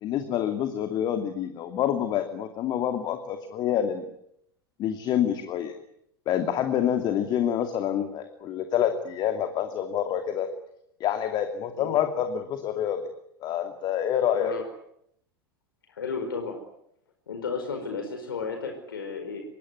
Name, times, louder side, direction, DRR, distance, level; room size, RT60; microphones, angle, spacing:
voice 1, 0.0-4.0 4.8-5.7 6.3-10.5 11.0-13.0 13.4-14.5, left 10 dB, 35° left, 7 dB, 2.7 m, -27 dB
voice 2, 14.3-14.6 15.9-16.6 17.3-19.4, left 5 dB, 70° left, 4 dB, 5.1 m, -33 dB
25.0 x 22.0 x 9.7 m, 0.73 s
figure-of-eight pair, 85°, 12 cm